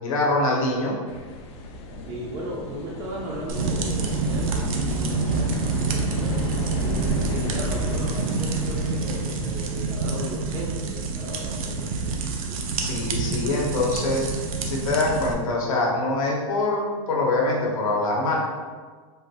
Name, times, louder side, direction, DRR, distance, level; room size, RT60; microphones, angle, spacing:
voice 1, 0.0-0.9 12.8-18.4, left 2 dB, 80° left, -2 dB, 0.9 m, -24 dB
sound 1, 1.1-10.0, left 2 dB, 55° left, 0.5 m, -33 dB
voice 2, 2.1-12.6, right 1 dB, 25° right, -4 dB, 0.4 m, -36 dB
sound 2, 3.5-15.3, right 4 dB, 85° right, 0.5 m, -27 dB
3.6 x 2.3 x 2.8 m, 1.5 s
supercardioid pair, 160°, 17 cm